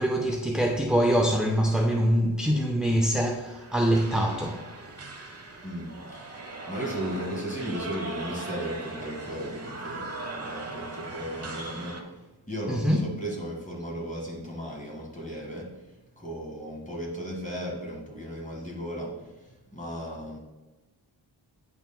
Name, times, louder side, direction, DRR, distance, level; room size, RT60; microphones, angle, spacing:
voice 1, 0.0-4.7 12.7-13.0, equal, ahead, 0.3 m, -24 dB
sound 1, 3.4-12.0, right 2 dB, 30° right, 0.9 m, -39 dB
voice 2, 5.6-20.4, equal, 15° left, 1.8 m, -36 dB
8.8 x 5.6 x 2.2 m
wide cardioid pair, 110°, 47 cm